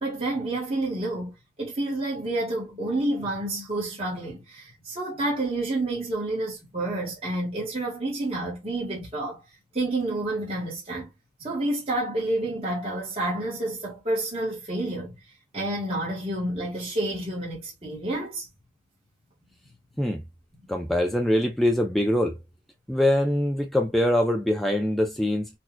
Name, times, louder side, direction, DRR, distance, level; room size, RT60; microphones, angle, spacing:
voice 1, 0.0-9.4 9.7-11.1 11.4-15.1 15.5-18.5, right 1 dB, 35° right, 1.3 m, -29 dB
voice 2, 20.7-22.3 22.9-25.5, left 1 dB, ahead, 0.4 m, -23 dB
4.3 x 2.3 x 2.2 m
head